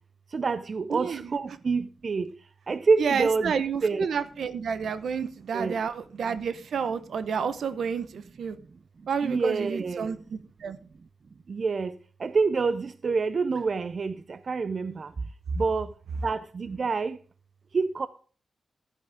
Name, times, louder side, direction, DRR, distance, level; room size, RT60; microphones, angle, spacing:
voice 1, 0.3-2.3 2.7-3.5 3.8-4.1 5.5-5.8 9.2-10.1 11.5-11.9 12.2-14.1 14.5-15.1 15.6-15.9 16.2-17.2 17.7-18.1, right 4 dB, 45° right, 0.4 m, -27 dB
voice 2, 0.9-1.3 3.0-8.5 9.1-10.8, right 6 dB, 75° right, 0.9 m, -30 dB
11.5 x 9.7 x 3.5 m
wide cardioid pair, 140°, 0 cm